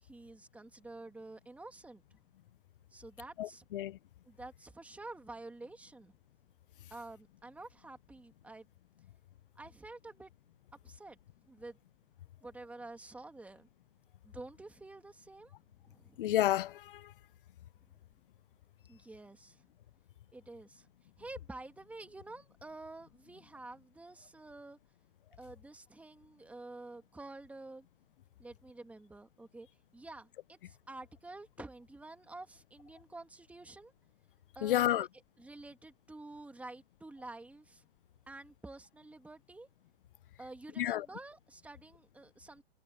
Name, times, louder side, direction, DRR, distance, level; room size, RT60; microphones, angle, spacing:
voice 1, 0.0-2.2 2.9-3.7 4.3-6.1 6.9-8.7 9.6-10.3 10.8-11.8 12.4-13.7 14.2-15.5 15.8-16.3 17.9-18.0 18.9-19.6 20.3-20.9 21.2-24.8 25.4-27.9 28.4-29.7 29.9-33.9 34.5-35.1 35.4-37.8 38.3-39.7 40.4-42.6, right 2 dB, 5° right, 2.7 m, -49 dB
voice 2, 3.4-4.0 16.2-17.1 34.6-35.1 40.8-41.1, left 13 dB, 55° left, 0.8 m, -30 dB
hypercardioid pair, 135°, 32 cm